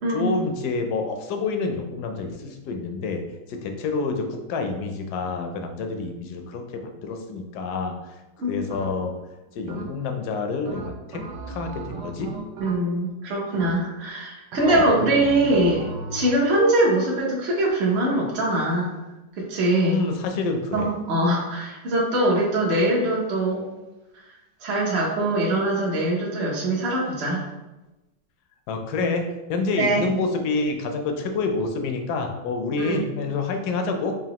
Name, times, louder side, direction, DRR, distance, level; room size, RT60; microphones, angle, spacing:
voice 1, 0.1-3.2 3.5-8.0 8.4-9.1 9.6-12.3 14.6-14.9 19.9-20.9 28.7-34.1, left 3 dB, 75° left, 4 dB, 1.1 m, -28 dB
sound 1, 8.7-9.2 9.7-10.2 10.7-13.1 13.5-14.1 14.5-16.5, right 2 dB, 80° right, 1.3 m, -36 dB
voice 2, 12.6-18.9 19.3-20.0 20.7-23.6 24.1-24.3 24.6-27.4 29.0-29.1 29.8-30.1 32.8-33.1, right 1 dB, 50° right, -5 dB, 0.8 m, -23 dB
4.9 x 2.7 x 2.9 m, 1.0 s
omnidirectional pair, 1.9 m